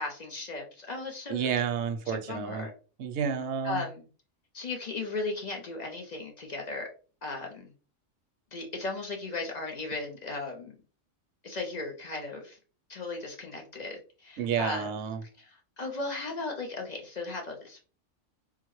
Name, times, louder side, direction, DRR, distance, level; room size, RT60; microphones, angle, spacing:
voice 1, 0.0-1.5 2.1-2.7 3.6-4.0 4.5-6.9 7.2-7.7 8.5-10.8 11.4-12.6 12.9-14.9 15.4-17.8, left 3 dB, 50° left, 2 dB, 0.5 m, -36 dB
voice 2, 1.3-2.7 3.0-3.8 14.4-15.2, right 7 dB, 70° right, 6 dB, 0.8 m, -30 dB
3.7 x 2.1 x 3.0 m, 0.37 s
omnidirectional pair, 1.3 m